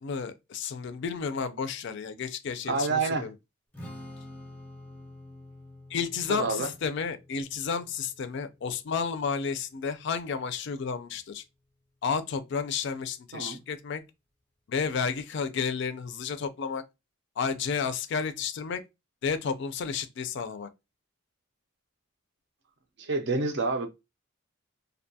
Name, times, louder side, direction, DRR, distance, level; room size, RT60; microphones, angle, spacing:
voice 1, 0.0-3.3 5.9-11.4 12.0-14.0 14.7-16.8 17.4-18.8 19.2-20.7, left 6 dB, 55° left, 0.3 m, -31 dB
voice 2, 2.7-3.3 6.3-6.7 13.3-13.6 23.0-23.9, right 3 dB, 55° right, 0.5 m, -28 dB
Strum, 3.7-10.0, left 1 dB, 5° left, 0.6 m, -48 dB
2.6 x 2.2 x 2.6 m
head